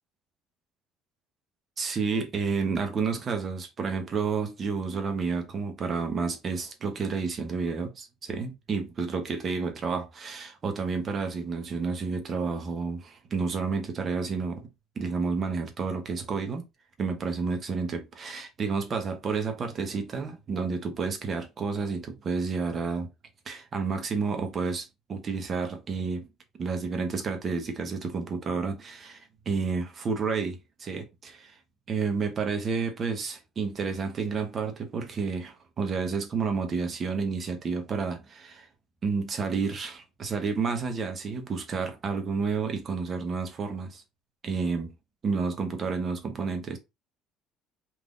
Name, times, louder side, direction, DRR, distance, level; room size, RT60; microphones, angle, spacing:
voice 1, 1.8-14.7 15.0-16.6 17.0-23.1 23.5-26.3 26.6-31.6 31.9-38.7 39.0-44.0 44.4-44.9 45.2-46.8, right 4 dB, 35° right, 0.8 m, -30 dB
3.5 x 2.6 x 2.5 m
cardioid pair, 135°, 0 cm